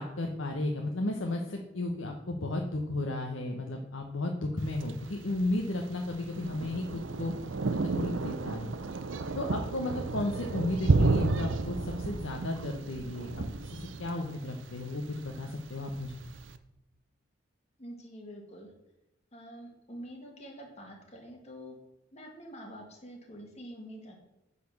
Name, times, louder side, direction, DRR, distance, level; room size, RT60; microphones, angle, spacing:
voice 1, 0.0-7.3 7.6-8.7 9.4-16.2, left 2 dB, 75° left, 2 dB, 0.9 m, -34 dB
Thunder, 4.6-16.5, right 3 dB, 65° right, 0.6 m, -32 dB
voice 2, 17.8-18.7 19.3-21.8 22.1-24.3, equal, 35° left, 0 dB, 2.0 m, -46 dB
9.7 x 4.3 x 7.0 m, 0.94 s
head